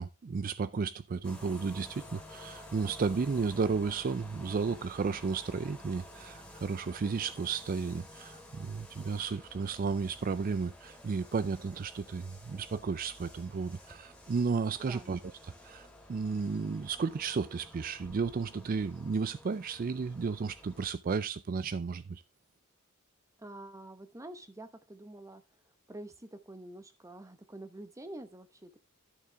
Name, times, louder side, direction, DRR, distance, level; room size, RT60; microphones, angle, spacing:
voice 1, 0.0-15.2 15.6-22.2, right 5 dB, 40° right, 0.4 m, -33 dB
Street sweeper - original rec, 1.2-20.9, left 1 dB, 5° left, 2.3 m, -52 dB
voice 2, 14.8-15.1 23.4-28.8, right 1 dB, 15° right, 1.0 m, -47 dB
11.5 x 6.6 x 3.4 m
head